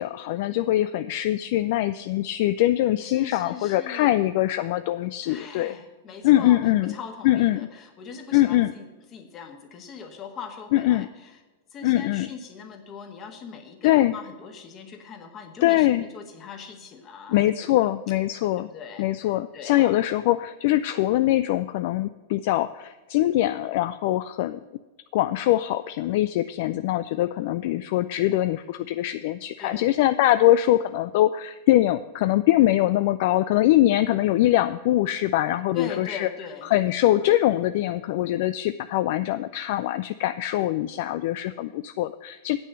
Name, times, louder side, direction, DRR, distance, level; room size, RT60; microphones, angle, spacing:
voice 1, 0.0-5.7 6.2-6.9 7.2-7.7 8.3-8.7 10.7-11.1 11.8-12.3 13.8-14.2 15.6-16.1 17.3-18.7 19.0-24.6 25.1-36.3 36.6-42.6, left 14 dB, 55° left, 12 dB, 0.3 m, -23 dB
voice 2, 3.0-4.2 5.2-8.9 9.1-11.4 11.7-17.8 18.6-20.1 29.6-29.9 35.7-36.7 37.2-37.3, left 6 dB, 30° left, 5 dB, 1.6 m, -40 dB
8.4 x 6.1 x 7.9 m, 1.2 s
figure-of-eight pair, 100°, 0 cm